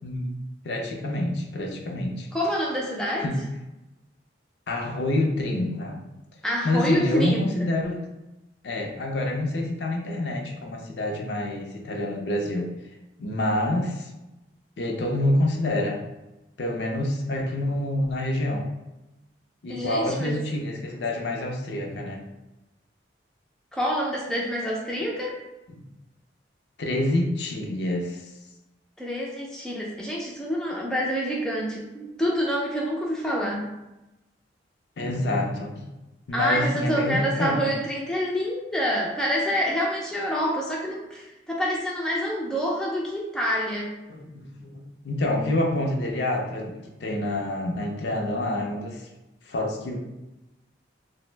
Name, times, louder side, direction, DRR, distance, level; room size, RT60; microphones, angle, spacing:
voice 1, 0.0-0.3 0.6-2.3 3.2-3.4 4.7-6.0 6.6-8.1 8.6-12.7 13.2-14.1 14.8-16.0 16.6-18.7 19.6-22.2 25.7-25.8 26.8-28.3 35.0-35.9 36.3-37.7 44.1-49.1 49.4-50.0, left 1 dB, 70° left, 1 dB, 0.5 m, -27 dB
voice 2, 2.3-3.3 6.4-7.7 19.7-20.4 23.7-25.4 29.0-33.7 36.3-43.9, equal, 5° left, -3 dB, 0.3 m, -27 dB
2.5 x 2.0 x 3.1 m, 0.98 s
head